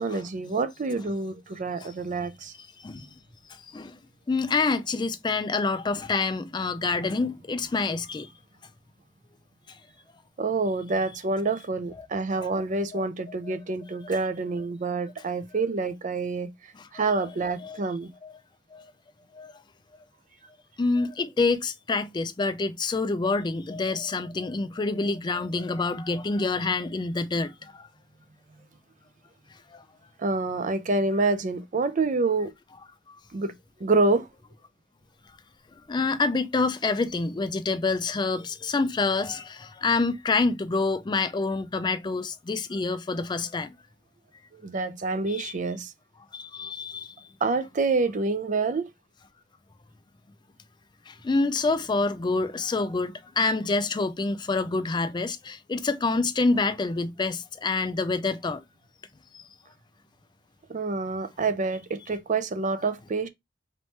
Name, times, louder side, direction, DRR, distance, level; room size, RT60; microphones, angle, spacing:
voice 1, 0.0-2.5 10.4-18.1 30.2-32.5 33.3-33.5 33.8-34.3 44.6-45.9 47.4-48.9 60.7-63.3, right 3 dB, 40° right, 0.5 m, -27 dB
voice 2, 3.5-4.0 4.3-8.3 12.0-12.1 12.9-13.0 13.5-13.6 16.8-17.3 17.6-17.8 18.2-18.3 18.7-18.9 19.3-19.5 20.8-27.9 29.7-29.8 33.1-33.2 35.9-43.7 45.3-45.5 46.3-47.3 51.1-58.6 59.3-59.4, left 3 dB, 25° left, 0.4 m, -27 dB
4.1 x 3.1 x 3.2 m
head